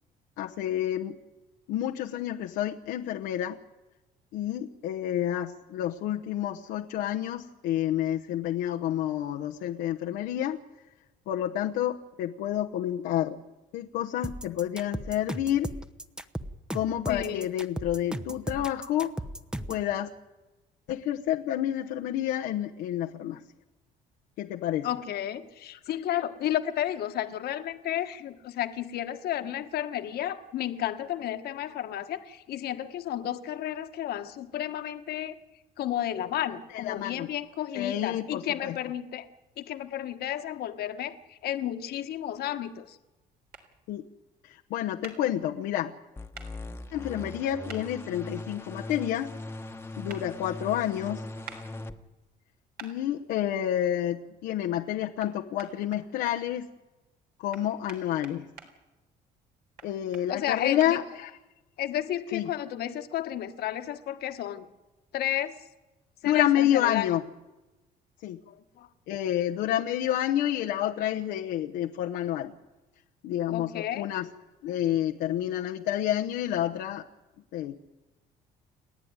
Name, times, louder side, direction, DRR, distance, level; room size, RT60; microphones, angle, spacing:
voice 1, 0.4-1.2 1.7-3.6 4.3-10.6 11.3-13.4 13.7-15.7 16.7-19.1 19.7-20.1 20.9-23.4 24.4-24.9 36.7-37.3 37.7-38.8 43.9-44.0 44.4-45.9 46.9-49.3 50.0-51.2 52.8-56.7 57.4-58.5 59.8-61.4 62.3-62.5 66.2-67.2 68.2-68.4 69.1-72.5 73.2-74.3 74.6-77.0 77.5-77.8, left 12 dB, 85° left, 1 dB, 1.0 m, -29 dB
sound 1, 14.2-19.9, right 1 dB, 5° right, 0.9 m, -36 dB
voice 2, 17.1-17.5 24.8-35.4 35.8-39.3 39.6-43.0 60.3-61.0 61.8-64.6 65.1-65.5 66.2-67.1 68.5-68.9 73.5-74.1, left 11 dB, 70° left, 8 dB, 1.5 m, -32 dB
sound 2, 43.5-43.6 45.0-45.2 46.3-46.5 47.7-47.8 50.1-50.2 51.4-51.6 52.8-52.9 55.2-55.3 55.6-56.4 57.5-58.7 59.8-60.9, right 5 dB, 65° right, 3.7 m, -44 dB
sound 3, 46.2-51.9, left 2 dB, 15° left, 1.3 m, -40 dB
29.5 x 10.5 x 9.6 m, 1.1 s
cardioid pair, 110°, 17 cm